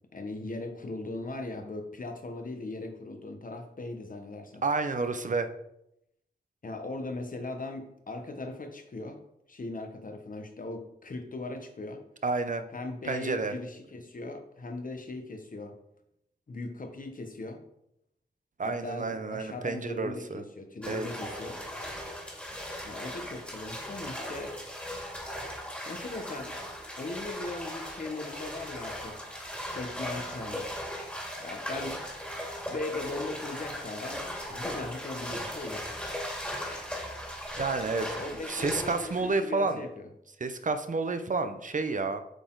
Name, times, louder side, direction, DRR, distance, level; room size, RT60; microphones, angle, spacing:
voice 1, 0.1-4.6 6.6-9.2 9.5-12.0 12.7-15.7 16.5-17.6 18.6-21.6 22.8-24.6 25.8-26.6 27.0-29.2 29.7-30.7 31.4-32.0 32.7-35.9 38.2-40.1, left 2 dB, 50° left, 5 dB, 1.1 m, -39 dB
voice 2, 4.6-5.5 12.2-12.6 13.1-13.5 18.6-20.4 20.9-21.1 37.6-38.1 38.5-39.8 40.4-42.2, right 3 dB, 45° right, 9 dB, 0.7 m, -30 dB
sound 1, 20.8-39.3, equal, 5° left, 2.1 m, -38 dB
8.0 x 4.2 x 3.9 m, 0.80 s
wide cardioid pair, 70°, 18 cm